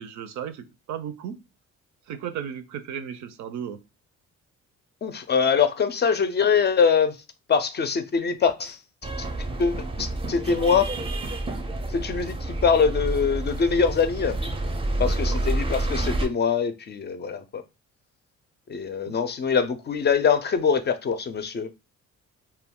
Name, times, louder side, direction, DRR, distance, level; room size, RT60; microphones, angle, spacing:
voice 1, 0.0-1.4 2.1-3.8 14.9-15.4 19.1-19.2, right 8 dB, 70° right, 0.5 m, -35 dB
voice 2, 5.0-7.2 7.5-8.8 9.2-9.3 9.6-10.9 11.9-14.4 15.0-17.6 18.7-21.7, left 6 dB, 35° left, 0.4 m, -23 dB
sound 1, 9.0-16.3, right 1 dB, 20° right, 0.5 m, -29 dB
2.2 x 2.2 x 3.6 m
cardioid pair, 90°, 30 cm